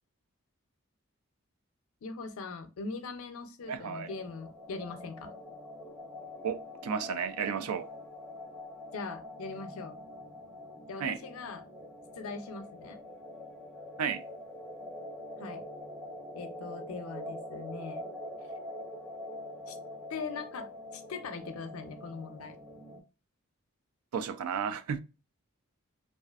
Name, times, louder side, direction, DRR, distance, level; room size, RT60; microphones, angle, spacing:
voice 1, 2.0-5.3 8.9-10.0 10.9-11.6 12.2-13.0 15.4-15.7 16.3-18.1 19.7-19.8 20.1-22.6, left 4 dB, 75° left, 0.4 m, -41 dB
sound 1, 3.6-23.0, left 1 dB, ahead, 0.5 m, -45 dB
voice 2, 3.7-4.1 6.4-7.9 11.0-11.2 14.0-14.2 24.1-25.0, right 7 dB, 85° right, 0.3 m, -33 dB
2.4 x 2.4 x 2.3 m
head